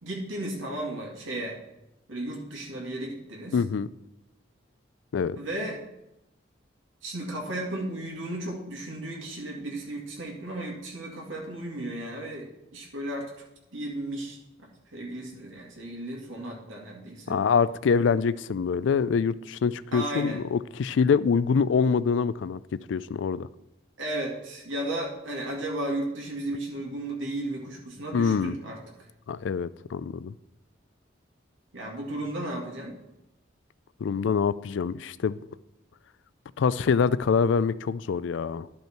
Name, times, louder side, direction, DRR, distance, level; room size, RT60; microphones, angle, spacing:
voice 1, 0.0-1.6 2.1-3.6 5.4-5.8 7.0-13.4 13.7-14.4 14.9-17.4 19.9-20.4 24.0-28.8 31.7-32.9, right 1 dB, 85° right, -1 dB, 2.2 m, -34 dB
voice 2, 3.5-3.9 5.1-5.4 17.3-22.6 22.9-23.5 28.1-28.6 29.3-30.3 34.0-35.4 36.6-38.7, left 6 dB, 70° left, 18 dB, 0.3 m, -25 dB
12.0 x 5.4 x 4.5 m, 0.89 s
head